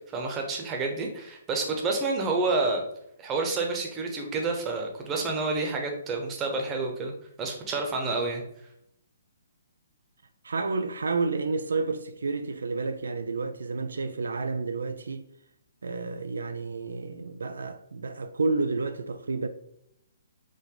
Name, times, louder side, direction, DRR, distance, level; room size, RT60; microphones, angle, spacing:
voice 1, 0.1-2.8 3.2-7.1 7.4-8.4, right 3 dB, 20° right, 1.0 m, -29 dB
voice 2, 10.4-15.3 15.8-19.5, right 3 dB, 80° right, 0.4 m, -30 dB
4.7 x 2.6 x 3.8 m
hypercardioid pair, 140°, 0 cm